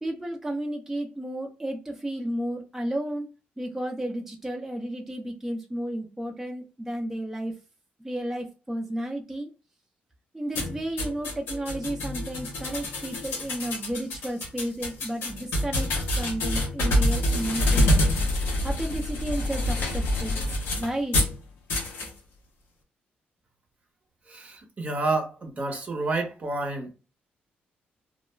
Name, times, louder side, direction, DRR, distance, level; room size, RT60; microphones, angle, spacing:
voice 1, 0.0-3.3 3.6-7.5 8.0-9.5 10.3-17.9 18.6-20.4 20.8-21.2 21.7-22.1, right 1 dB, 10° right, 0.5 m, -32 dB
sound 1, 10.5-21.4 21.7-22.1, left 1 dB, 85° left, 0.8 m, -26 dB
voice 2, 24.3-26.9, right 2 dB, 40° right, 0.7 m, -29 dB
2.3 x 2.1 x 3.1 m
cardioid pair, 75°, 4 cm